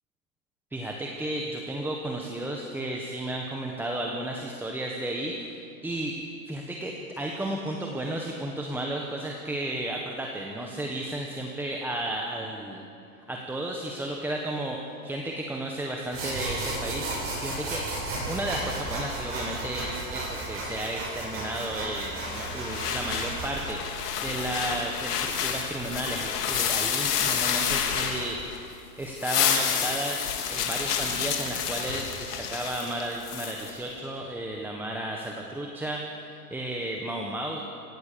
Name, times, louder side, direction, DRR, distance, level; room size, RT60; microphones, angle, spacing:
voice 1, 0.7-6.1 6.5-12.8 13.2-17.9 18.2-37.6, right 1 dB, 5° right, 0 dB, 1.4 m, -33 dB
sound 1, 16.1-23.6, right 2 dB, 30° right, 7.8 m, -34 dB
sound 2, 22.3-28.7 29.0-33.7, left 8 dB, 85° left, 3.2 m, -29 dB
27.0 x 16.5 x 6.9 m, 2.6 s
supercardioid pair, 150°, 46 cm